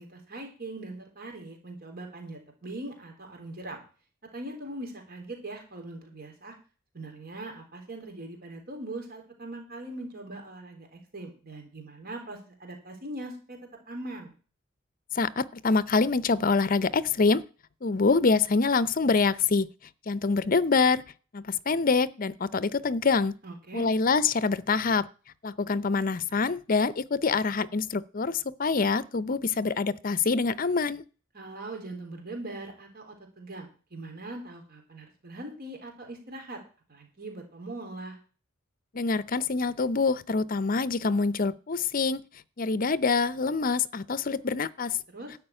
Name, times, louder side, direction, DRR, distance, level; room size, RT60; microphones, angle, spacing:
voice 1, 0.0-3.8 4.3-6.5 6.9-13.6 13.9-14.3 23.4-23.9 31.3-36.6 36.9-38.2 45.1-45.3, right 2 dB, 50° right, 3.8 m, -41 dB
voice 2, 15.1-17.4 17.8-19.7 20.1-21.0 21.3-23.3 23.7-25.1 25.4-31.0 38.9-42.2 42.6-45.0, left 4 dB, 45° left, 0.6 m, -25 dB
12.5 x 5.6 x 8.9 m
head